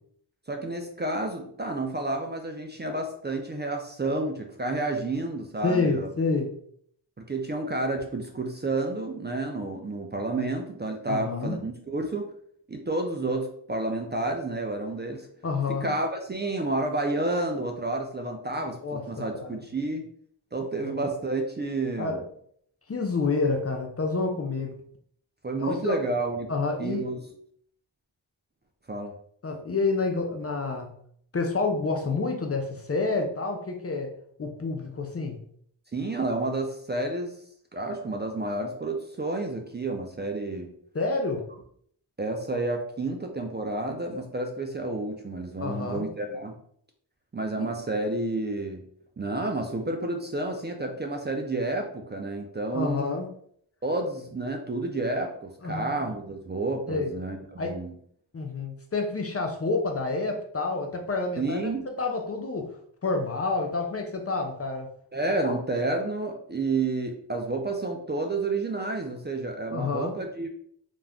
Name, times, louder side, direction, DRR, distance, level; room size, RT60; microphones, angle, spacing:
voice 1, 0.5-6.1 7.2-12.3 12.7-15.3 15.7-20.0 20.5-22.2 25.4-26.5 26.8-27.3 28.9-29.1 35.9-37.3 37.7-40.7 42.2-46.6 47.3-48.8 49.2-53.1 53.8-57.9 61.4-61.9 65.1-70.5, right 2 dB, 25° right, 3 dB, 0.4 m, -30 dB
voice 2, 5.6-6.5 11.1-11.6 15.4-15.9 18.8-19.6 20.8-21.0 22.0-22.2 22.9-24.7 25.6-26.0 26.5-27.0 29.4-30.9 31.3-34.1 34.4-35.4 40.9-41.4 45.6-46.1 47.6-47.7 52.7-53.3 55.6-56.0 56.9-57.1 57.6-57.7 58.3-61.6 62.0-62.7 63.0-64.9 65.4-65.5 69.7-70.2, left 3 dB, 35° left, 3 dB, 0.5 m, -28 dB
2.4 x 2.1 x 3.4 m, 0.64 s
cardioid pair, 45°, 45 cm